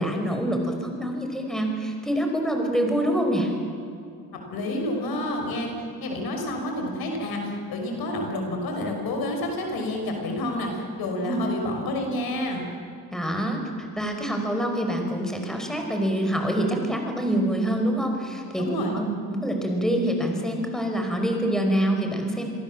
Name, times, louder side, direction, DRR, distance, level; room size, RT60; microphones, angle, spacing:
voice 1, 0.0-3.5 11.2-11.4 13.1-13.6 13.9-22.5, right 1 dB, ahead, 3 dB, 5.1 m, -26 dB
voice 2, 4.3-5.7 6.0-12.7 18.6-18.9, left 1 dB, 90° left, 2 dB, 5.7 m, -29 dB
28.0 x 22.5 x 7.5 m, 2.4 s
cardioid pair, 100°, 35 cm